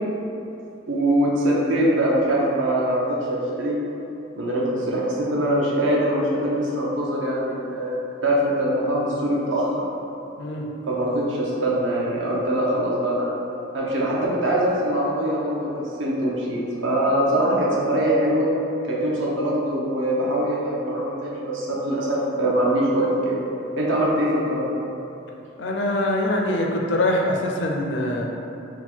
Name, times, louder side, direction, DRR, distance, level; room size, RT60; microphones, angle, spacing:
voice 1, 0.9-3.8 4.4-9.7 10.9-13.3 13.7-18.5 18.9-23.4 23.8-24.7, right 1 dB, 80° right, -4 dB, 0.8 m, -23 dB
voice 2, 25.6-28.3, left 1 dB, 65° left, 1 dB, 0.5 m, -23 dB
3.7 x 2.2 x 4.4 m, 2.9 s
head